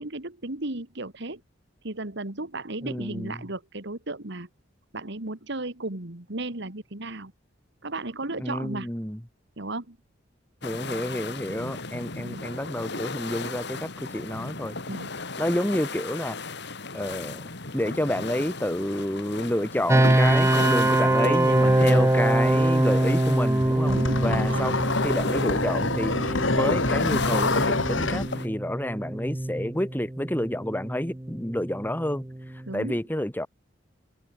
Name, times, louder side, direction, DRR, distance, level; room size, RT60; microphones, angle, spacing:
voice 1, 0.0-1.4 1.8-4.5 4.9-7.3 7.8-8.9 9.6-10.0 12.2-12.5 14.8-15.1 21.6-22.1 23.8-24.7 32.7-33.0, right 2 dB, 65° right, 2.4 m, -35 dB
voice 2, 2.8-3.4 8.4-9.2 10.6-14.8 15.4-16.4 16.9-24.7 25.0-32.2 32.7-33.5, left 1 dB, 10° left, 2.5 m, -29 dB
sound 1, 10.6-28.5, left 3 dB, 60° left, 3.8 m, -36 dB
sound 2, 19.9-32.7, right 1 dB, 15° right, 0.7 m, -24 dB
sound 3, 23.6-28.3, left 3 dB, 75° left, 3.1 m, -26 dB
head